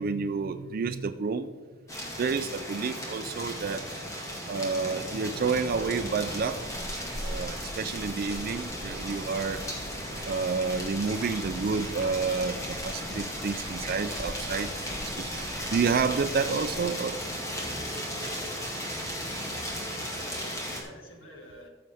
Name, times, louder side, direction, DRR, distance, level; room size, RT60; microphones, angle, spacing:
voice 1, 0.0-1.5 2.2-3.9 4.5-6.6 7.2-9.6 10.2-14.7 15.2-15.3 15.7-17.2, right 5 dB, 45° right, 8 dB, 0.4 m, -29 dB
sound 1, 1.9-20.8, equal, 15° left, 1.9 m, -36 dB
sound 2, 5.4-16.8, equal, 5° right, 2.6 m, -42 dB
voice 2, 20.0-21.7, left 1 dB, 70° left, 1 dB, 2.1 m, -49 dB
14.5 x 6.7 x 3.5 m, 1.5 s
head